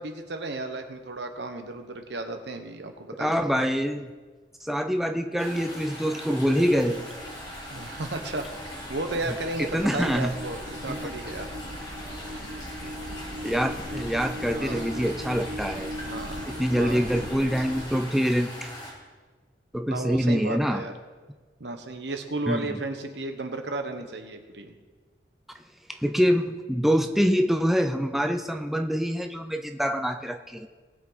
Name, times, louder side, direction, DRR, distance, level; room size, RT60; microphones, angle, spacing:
voice 1, 0.0-3.7 7.7-11.5 14.5-14.8 16.0-16.5 16.8-17.3 19.9-20.9 21.6-24.7, right 2 dB, 70° right, 6 dB, 1.2 m, -34 dB
voice 2, 3.2-4.1 4.6-7.0 9.6-10.3 10.9-11.1 12.8-12.9 13.4-15.9 16.6-18.7 19.7-20.8 22.5-22.8 26.0-30.7, equal, ahead, 5 dB, 0.4 m, -25 dB
sound 1, 5.4-18.9, left 1 dB, 25° left, 4.3 m, -41 dB
sound 2, 6.2-17.9, equal, 90° right, 1.7 m, -39 dB
19.5 x 7.3 x 4.1 m, 1.4 s
head